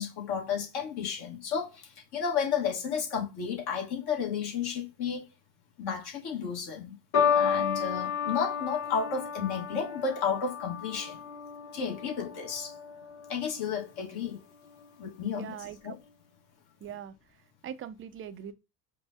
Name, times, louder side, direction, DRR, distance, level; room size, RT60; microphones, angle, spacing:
voice 1, 0.0-5.2 5.8-7.0 7.3-11.2 11.7-12.7 13.3-14.4 15.0-15.5 15.8-16.0, left 6 dB, 50° left, 1.7 m, -32 dB
sound 1, 7.1-13.7 14.5-14.9, left 7 dB, 70° left, 1.6 m, -32 dB
voice 2, 15.3-15.8 16.8-17.1 17.6-18.5, right 9 dB, 25° right, 0.5 m, -41 dB
4.8 x 2.2 x 2.7 m
hypercardioid pair, 80°, 48 cm